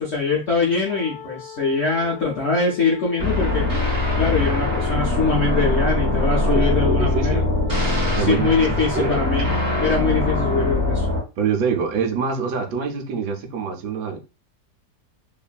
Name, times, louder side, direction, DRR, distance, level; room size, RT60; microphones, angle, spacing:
voice 1, 0.0-3.6 4.2-7.4 8.2-9.5 9.8-11.1, left 4 dB, 70° left, 0.6 m, -23 dB
Wind instrument woodwind instrument, 0.8-10.0, left 9 dB, 85° left, 1.3 m, -41 dB
sound 1, 3.2-11.2, left 2 dB, 25° right, 1.6 m, -22 dB
voice 2, 6.4-7.5 8.2-9.5 11.4-14.2, right 6 dB, 75° right, 1.2 m, -26 dB
3.0 x 2.4 x 2.2 m
omnidirectional pair, 1.8 m